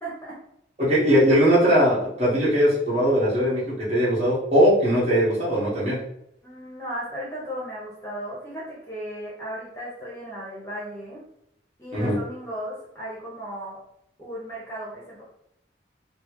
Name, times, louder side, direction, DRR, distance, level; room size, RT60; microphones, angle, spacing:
voice 1, 0.0-0.3 6.4-11.2 11.8-13.8 14.2-15.2, equal, 15° left, -6 dB, 0.9 m, -35 dB
voice 2, 0.8-6.0 11.9-12.2, equal, 35° right, -8 dB, 1.4 m, -20 dB
4.1 x 2.0 x 3.0 m, 0.77 s
head